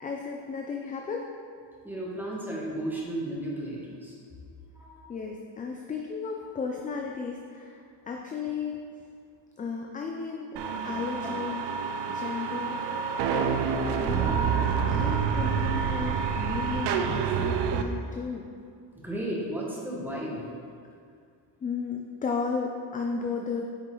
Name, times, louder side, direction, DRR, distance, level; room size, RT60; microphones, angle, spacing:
voice 1, 0.0-1.3 5.1-8.8 9.6-10.5 10.8-11.7 12.1-13.0 13.3-14.5 14.9-18.5 21.6-23.6, left 5 dB, 20° left, 1 dB, 0.3 m, -34 dB
voice 2, 1.8-4.2 4.7-5.0 18.9-20.5, right 1 dB, 5° right, -5 dB, 1.4 m, -34 dB
sound 1, 10.6-17.8, right 6 dB, 60° right, 0.6 m, -28 dB
8.4 x 4.8 x 3.8 m, 2.3 s
cardioid pair, 130°, 45 cm